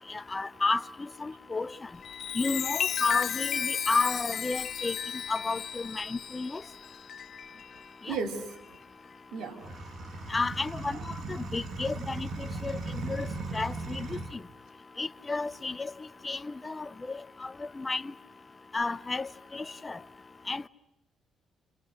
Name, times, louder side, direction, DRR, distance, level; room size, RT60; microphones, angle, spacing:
voice 1, 0.1-1.7 2.3-4.9 5.3-6.6 8.0-8.2 10.3-11.0 11.3-13.3 13.5-14.2 15.0-15.9 16.2-18.1 18.7-20.0 20.5-20.7, left 3 dB, 25° left, 1.0 m, -32 dB
Chime, 1.9-7.9 8.5-8.8, left 8 dB, 60° left, 1.0 m, -34 dB
voice 2, 8.1-8.6 9.3-9.7 10.8-11.1, right 4 dB, 80° right, 3.3 m, -35 dB
sound 1, 9.6-14.4, right 2 dB, 55° right, 2.3 m, -37 dB
29.5 x 28.5 x 6.5 m
cardioid pair, 90°, 0 cm